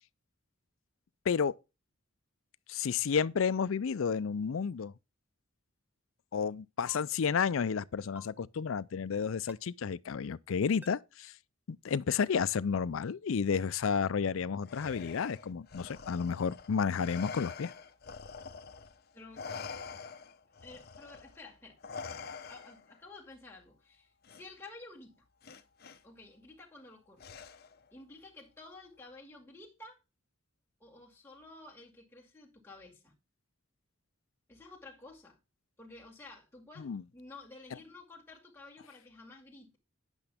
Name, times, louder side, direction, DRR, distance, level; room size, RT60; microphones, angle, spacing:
voice 1, 2.7-4.9 6.3-11.3 11.7-17.7 36.8-37.0, left 6 dB, 70° left, 0.4 m, -31 dB
Digital UI Buttons Errors Switches Sounds (gs), 6.8-7.0 8.1-8.3 9.5-9.6 10.8-10.9, left 1 dB, 10° right, 0.5 m, -49 dB
Respiratory sounds, 14.6-19.0 19.3-23.0 24.2-24.4 25.4-26.0 27.2-27.8, left 5 dB, 50° left, 0.8 m, -46 dB
voice 2, 19.1-19.5 20.6-21.8 22.5-25.3 26.0-27.4 27.9-30.0 30.8-33.1 34.5-35.4 35.8-39.8, left 2 dB, 10° left, 2.2 m, -52 dB
9.8 x 8.2 x 3.5 m
head